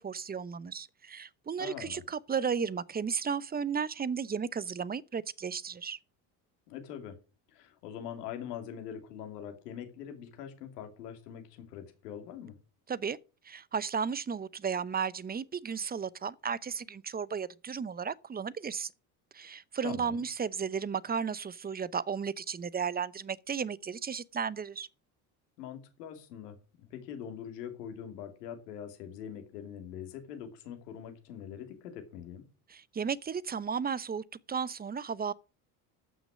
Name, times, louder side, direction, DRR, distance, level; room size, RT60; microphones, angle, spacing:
voice 1, 0.0-6.0 12.9-13.2 13.4-18.9 19.3-24.9 32.7-35.3, right 6 dB, 20° right, 0.8 m, -34 dB
voice 2, 1.6-2.0 6.7-7.2 7.5-12.5 19.8-20.2 25.6-32.4, left 9 dB, 85° left, 2.7 m, -43 dB
14.5 x 6.1 x 6.3 m
hypercardioid pair, 70°, 47 cm